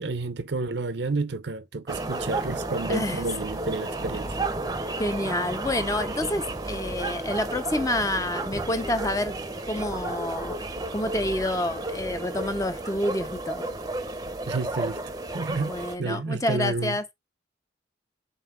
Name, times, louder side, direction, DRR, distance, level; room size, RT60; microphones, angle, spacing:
voice 1, 0.0-4.4 14.5-15.0 15.3-15.7 16.0-17.0, right 3 dB, 65° right, 0.7 m, -30 dB
sound 1, 1.9-16.0, right 2 dB, 20° right, 0.7 m, -32 dB
voice 2, 2.9-3.2 5.0-9.4 9.7-10.6 10.9-13.7 15.7-17.0, left 1 dB, 15° left, 0.6 m, -28 dB
5.5 x 4.2 x 5.9 m
head